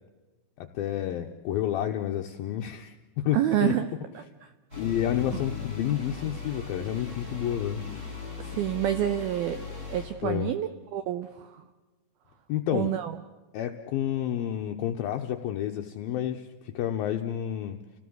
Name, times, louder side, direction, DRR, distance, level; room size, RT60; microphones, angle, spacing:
voice 1, 0.6-3.7 4.8-7.8 10.2-10.5 12.5-12.9 13.5-16.5 16.7-17.8, left 11 dB, 75° left, 3 dB, 2.2 m, -30 dB
voice 2, 3.3-3.9 4.1-4.5 5.3-5.4 8.4-9.6 9.9-11.6 12.7-13.1, right 12 dB, 80° right, 10 dB, 2.2 m, -28 dB
sound 1, 4.7-10.1, left 5 dB, 15° right, 6.9 m, -38 dB
30.0 x 18.0 x 7.9 m, 1.2 s
omnidirectional pair, 5.6 m